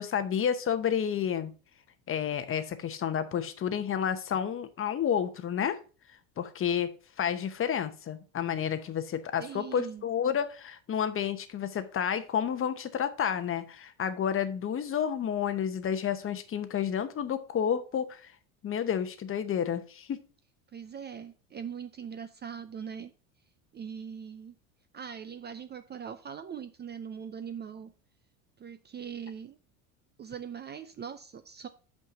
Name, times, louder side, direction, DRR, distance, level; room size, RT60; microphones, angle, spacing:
voice 1, 0.0-1.5 2.1-5.8 6.4-6.9 7.2-18.2 18.6-20.2, left 8 dB, 30° left, 0.9 m, -30 dB
voice 2, 9.4-10.1 20.7-23.1 23.7-24.6 24.9-27.9 28.6-29.6 30.2-31.7, right 7 dB, 25° right, 0.5 m, -41 dB
5.8 x 5.7 x 5.7 m
supercardioid pair, 100°, 42 cm